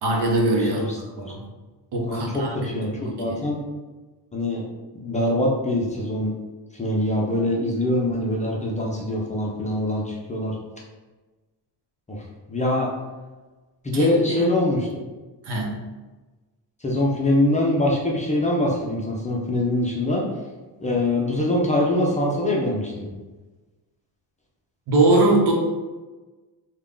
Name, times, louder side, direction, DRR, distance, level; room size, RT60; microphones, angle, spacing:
voice 1, 0.0-0.8 1.2-1.4 1.9-3.4 13.9-14.5 15.4-15.8 24.9-25.5, right 2 dB, 65° right, -1 dB, 1.0 m, -22 dB
voice 2, 0.6-1.3 2.0-3.6 4.3-4.6 5.0-6.3 6.7-10.6 12.1-12.2 12.5-12.9 13.8-14.9 16.8-20.2 20.8-23.1, left 1 dB, 15° left, -3 dB, 0.5 m, -23 dB
3.3 x 2.3 x 3.7 m, 1.2 s
cardioid pair, 140°, 44 cm